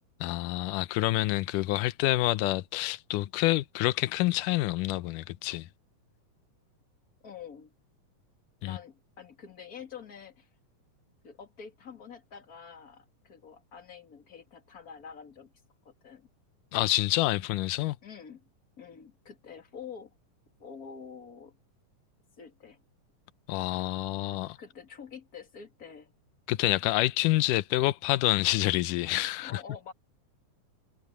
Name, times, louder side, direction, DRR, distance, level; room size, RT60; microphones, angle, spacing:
voice 1, 0.2-5.7 8.6-8.8 16.7-18.0 23.5-24.6 26.5-29.6, left 17 dB, 85° left, 2.3 m, -27 dB
voice 2, 7.2-7.7 8.6-10.5 11.2-15.5 15.8-16.3 18.0-18.5 18.8-20.1 20.6-21.6 22.4-22.8 24.6-26.1 29.2-29.9, left 6 dB, 30° left, 2.4 m, -47 dB
omnidirectional pair, 3.6 m